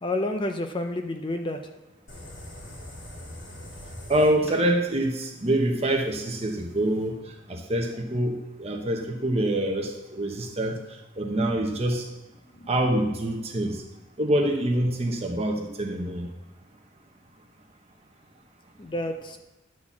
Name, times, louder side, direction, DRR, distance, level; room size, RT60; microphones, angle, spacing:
voice 1, 0.0-1.6 12.5-12.7 18.8-19.4, left 1 dB, 25° left, 5 dB, 0.6 m, -30 dB
sound 1, 2.1-7.1, left 1 dB, 70° left, 2.7 m, -44 dB
voice 2, 4.1-7.2 7.5-10.8 11.2-12.1 12.7-13.8 14.2-16.3, right 1 dB, 30° right, 2 dB, 1.0 m, -25 dB
10.5 x 4.2 x 7.1 m, 1.0 s
head